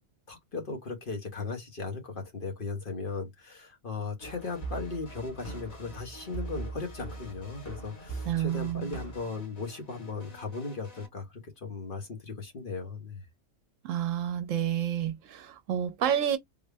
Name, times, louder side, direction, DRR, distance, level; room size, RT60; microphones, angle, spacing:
voice 1, 0.3-13.2, left 4 dB, 45° left, 1.1 m, -37 dB
sound 1, 4.2-11.1, left 1 dB, 85° left, 2.1 m, -52 dB
sound 2, 4.2-9.2, right 3 dB, 15° left, 0.9 m, -41 dB
voice 2, 8.3-8.9 13.8-16.4, right 10 dB, 70° right, 0.9 m, -29 dB
3.8 x 2.1 x 3.4 m
omnidirectional pair, 1.4 m